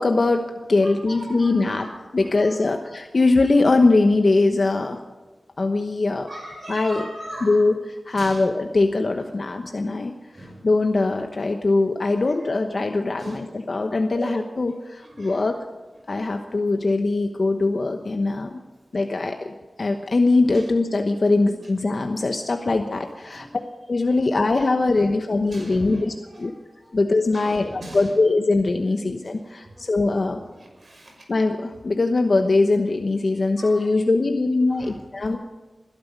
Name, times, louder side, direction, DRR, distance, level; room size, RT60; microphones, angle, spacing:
voice 1, 0.0-1.9 2.1-5.0 5.6-6.3 6.7-7.0 7.4-7.7 8.1-10.1 10.6-15.6 16.1-18.6 18.9-23.5 23.9-26.1 26.4-26.5 26.9-30.4 31.3-35.4, left 3 dB, 55° left, 5 dB, 1.0 m, -21 dB
voice 2, 0.8-3.7 6.3-7.8 8.1-8.5 10.3-10.7 12.3-12.5 13.0-13.8 14.1-14.4 15.0-15.5 15.9-16.1 18.5-18.6 18.9-19.0 20.5-20.7 21.6-21.7 23.3-23.7 24.1-24.3 24.9-27.0 27.3-28.2 28.8-31.3 33.3-34.0 34.7-35.4, right 1 dB, 50° right, 1 dB, 5.9 m, -42 dB
22.0 x 12.0 x 5.3 m, 1.3 s
wide cardioid pair, 100°, 0 cm